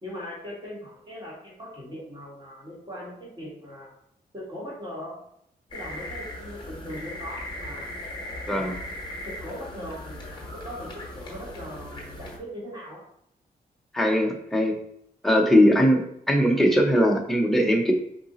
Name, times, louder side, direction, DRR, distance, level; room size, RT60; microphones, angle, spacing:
voice 1, 0.0-3.9 4.3-5.2 5.7-7.9 8.4-8.7 9.3-13.0, equal, 30° right, -5 dB, 1.8 m, -39 dB
sound 1, 5.7-12.4, left 1 dB, 30° left, 1.2 m, -38 dB
voice 2, 13.9-14.8 15.2-17.9, equal, ahead, 0 dB, 0.7 m, -20 dB
4.8 x 2.6 x 3.9 m, 0.72 s
wide cardioid pair, 130°, 16 cm